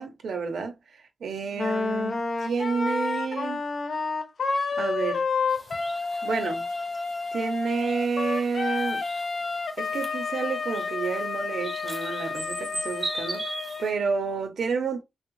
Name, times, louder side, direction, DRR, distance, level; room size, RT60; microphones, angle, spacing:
voice 1, 0.0-3.6 4.8-5.2 6.2-6.7 7.3-9.0 9.8-15.0, right 5 dB, 70° right, 0.6 m, -30 dB
Wind instrument woodwind instrument, 1.6-14.0, left 4 dB, 45° left, 0.5 m, -30 dB
sound 1, 5.5-13.9, right 2 dB, 25° right, 0.7 m, -40 dB
3.4 x 2.0 x 3.0 m
wide cardioid pair, 145°, 0 cm